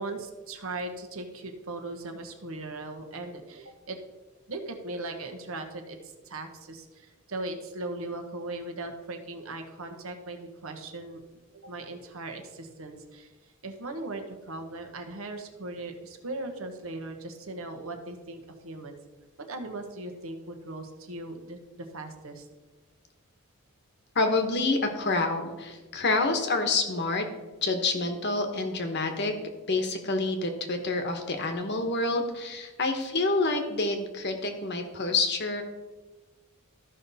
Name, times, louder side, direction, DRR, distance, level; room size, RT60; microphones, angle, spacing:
voice 1, 0.0-4.0 4.5-11.2 11.5-19.0 19.4-22.5, right 2 dB, 65° right, 4 dB, 1.2 m, -38 dB
voice 2, 24.1-27.3 27.6-29.3 29.7-35.6, left 3 dB, 50° left, 6 dB, 1.2 m, -27 dB
13.5 x 5.6 x 4.1 m, 1.2 s
head